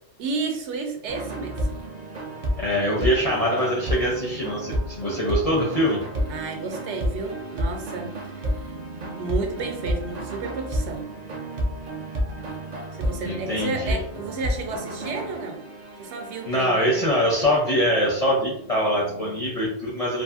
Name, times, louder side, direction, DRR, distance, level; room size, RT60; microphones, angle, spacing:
voice 1, 0.2-1.7 6.3-8.5 9.0-11.1 12.9-15.6 16.0-17.1, right 4 dB, 75° right, 3 dB, 0.9 m, -32 dB
sound 1, 1.1-19.4, equal, 55° right, 0.4 m, -31 dB
voice 2, 2.6-6.0 13.2-14.0 16.5-20.2, equal, 45° left, -3 dB, 0.5 m, -23 dB
2.6 x 2.4 x 2.4 m, 0.74 s
omnidirectional pair, 1.2 m